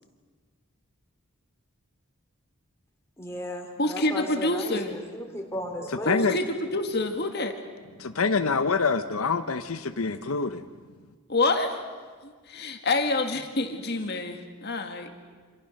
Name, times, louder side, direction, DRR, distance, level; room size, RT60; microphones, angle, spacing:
voice 1, 3.2-6.2, left 1 dB, 10° left, 2 dB, 3.2 m, -35 dB
voice 2, 3.8-4.9 6.1-7.6 11.3-11.8 12.2-15.2, left 2 dB, 45° left, 5 dB, 2.0 m, -27 dB
voice 3, 6.1-6.4 8.0-10.6, left 4 dB, 75° left, 9 dB, 0.9 m, -26 dB
28.5 x 27.0 x 6.6 m, 1.5 s
head